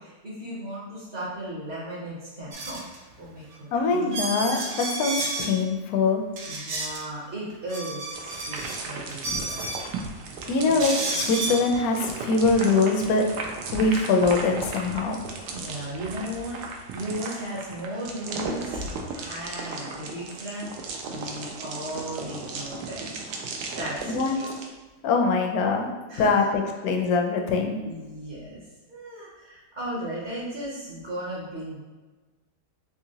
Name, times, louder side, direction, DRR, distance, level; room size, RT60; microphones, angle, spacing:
voice 1, 0.0-2.8 3.2-4.4 6.5-9.8 15.5-23.1 23.8-24.5 26.1-26.5 27.8-31.8, right 1 dB, 45° right, -7 dB, 0.7 m, -36 dB
sound 1, 2.5-3.0 3.5-3.6 4.1-5.5 6.4-7.0 7.5-8.8 9.1-9.9 10.8-11.7, right 2 dB, 70° right, 1.0 m, -31 dB
voice 2, 3.7-6.2 10.5-13.3 13.7-15.2 24.1-24.3 25.0-25.9 26.2-26.4 26.8-27.8, left 4 dB, 70° left, 3 dB, 1.0 m, -23 dB
sound 2, 8.1-24.7, right 4 dB, 90° right, 1.2 m, -36 dB
3.8 x 2.9 x 2.7 m, 1.3 s
omnidirectional pair, 1.8 m